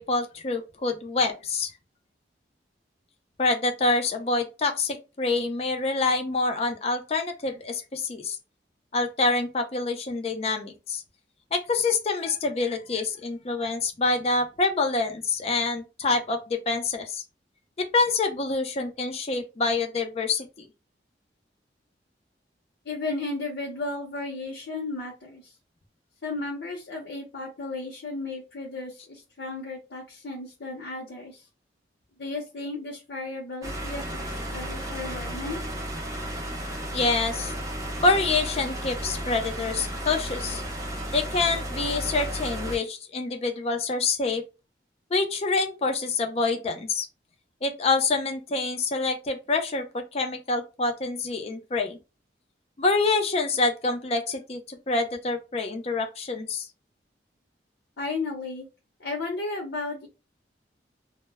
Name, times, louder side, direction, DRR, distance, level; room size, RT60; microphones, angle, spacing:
voice 1, 0.0-1.7 3.4-8.4 8.9-11.0 11.5-17.2 17.8-20.7 36.9-37.5 38.0-40.6 41.1-44.4 45.1-47.1 47.6-52.0 52.8-56.7, left 3 dB, 35° left, 0.4 m, -26 dB
voice 2, 22.8-25.5 26.2-31.5 32.2-35.7 58.0-58.7 59.0-60.1, left 3 dB, 75° left, 0.7 m, -34 dB
sound 1, 33.6-42.8, right 1 dB, 20° right, 0.5 m, -33 dB
2.0 x 2.0 x 3.3 m
head